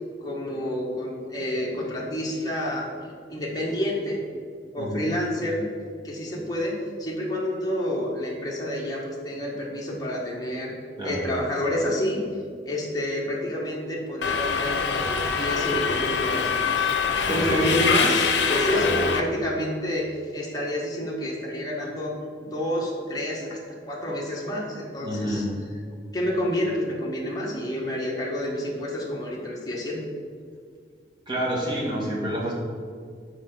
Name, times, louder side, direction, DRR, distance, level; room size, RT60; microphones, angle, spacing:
voice 1, 0.2-2.9 3.3-4.2 4.7-5.6 6.0-6.7 7.0-10.7 11.0-12.2 12.6-16.9 17.3-22.1 22.4-23.6 23.8-25.4 26.1-30.0, left 1 dB, 20° left, -3 dB, 1.3 m, -28 dB
voice 2, 4.8-5.1 11.0-11.2 17.2-17.8 18.7-19.1 25.0-25.5 31.3-32.5, equal, 25° right, -4 dB, 1.6 m, -28 dB
Subway metro underground, 14.2-19.2, left 6 dB, 75° left, 0.6 m, -24 dB
5.8 x 4.9 x 6.0 m, 2.1 s
head